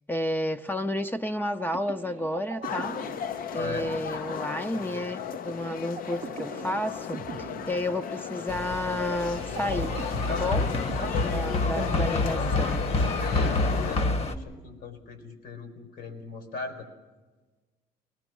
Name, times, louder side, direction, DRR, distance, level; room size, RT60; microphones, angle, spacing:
voice 1, 0.1-3.0 3.5-9.9 10.3-10.7 11.3-12.8, left 1 dB, 10° left, 0.6 m, -31 dB
sound 1, 1.4-12.1, right 7 dB, 45° right, 0.8 m, -43 dB
sound 2, 2.6-14.0, left 9 dB, 60° left, 0.7 m, -35 dB
voice 2, 3.5-3.9 10.3-10.7 11.0-12.6 13.2-16.9, left 3 dB, 80° left, 4.5 m, -38 dB
sound 3, 8.5-14.4, left 2 dB, 40° left, 1.2 m, -28 dB
23.0 x 18.5 x 6.2 m
cardioid pair, 110°, 17 cm